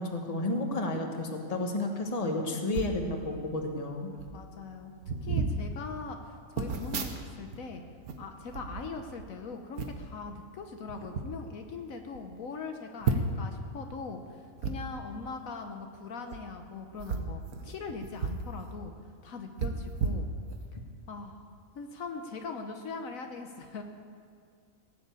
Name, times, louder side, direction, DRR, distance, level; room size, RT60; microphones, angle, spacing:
voice 1, 0.0-4.1, left 2 dB, 25° left, 3 dB, 1.3 m, -31 dB
sound 1, 2.7-3.0 3.8-3.9 4.2-4.4 5.0-5.6 6.6-7.6 7.9-9.3 9.8-10.1 10.9-11.3 11.8-11.9 12.1-12.2 13.0-13.5 14.6-14.7 16.2-16.4 17.0-18.5 18.8-18.9 19.6-20.8 21.3-21.4, right 5 dB, 80° right, 1.5 m, -33 dB
voice 2, 4.3-4.9 5.2-7.8 8.2-18.9 19.2-20.3 21.1-21.5 21.7-23.8, left 4 dB, 70° left, 5 dB, 1.3 m, -41 dB
17.5 x 7.1 x 8.2 m, 2.3 s
omnidirectional pair, 1.5 m